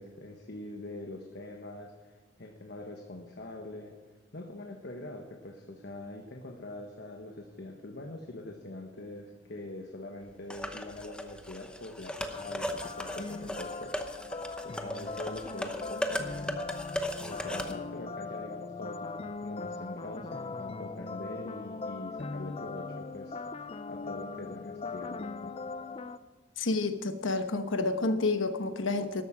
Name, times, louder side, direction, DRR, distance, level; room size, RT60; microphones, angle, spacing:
voice 1, 0.0-3.9 4.3-14.0 14.6-16.5 17.2-23.4 23.9-25.6, left 1 dB, 55° left, 1.2 m, -43 dB
sound 1, 10.5-17.7, left 1 dB, 5° left, 0.9 m, -37 dB
sound 2, 12.3-26.2, left 4 dB, 30° left, 0.4 m, -40 dB
voice 2, 26.6-29.2, left 3 dB, 85° left, 1.1 m, -29 dB
13.5 x 11.5 x 5.0 m
head